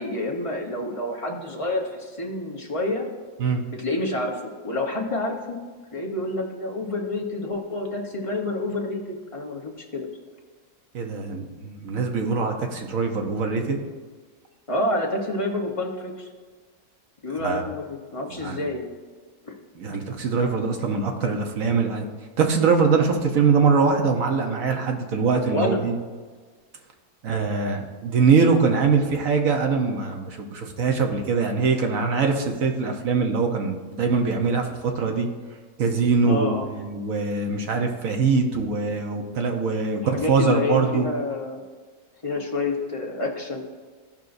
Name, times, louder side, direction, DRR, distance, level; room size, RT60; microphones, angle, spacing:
voice 1, 0.0-3.1 3.7-5.6 5.9-10.1 14.7-16.3 17.2-18.9 19.4-19.5 25.5-25.8 36.3-36.7 40.0-41.6 42.2-43.6, left 2 dB, 25° left, -1 dB, 1.0 m, -28 dB
voice 2, 10.9-13.8 17.4-17.6 18.3-18.6 19.8-22.0 22.4-26.0 27.2-35.3 35.8-41.1, right 5 dB, 65° right, 3 dB, 1.4 m, -23 dB
15.0 x 5.4 x 2.6 m, 1.5 s
omnidirectional pair, 1.6 m